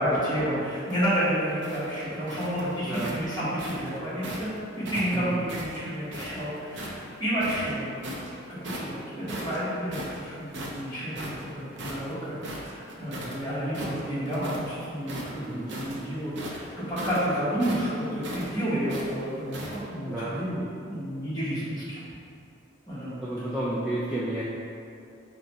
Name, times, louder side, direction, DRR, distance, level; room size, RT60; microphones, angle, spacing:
voice 1, 0.0-8.1 8.6-8.9 9.4-22.0 22.9-23.3, equal, 20° left, -12 dB, 1.2 m, -30 dB
sound 1, 0.7-4.5 4.9-7.0 7.4-8.3 8.6-9.0 9.3-13.4 13.7-14.7 15.0-19.8, right 1 dB, 60° right, 0.5 m, -38 dB
voice 2, 5.1-5.4 15.4-15.7 20.1-20.4 23.2-24.4, right 1 dB, 5° right, -10 dB, 0.3 m, -31 dB
3.7 x 2.3 x 4.1 m, 2.5 s
head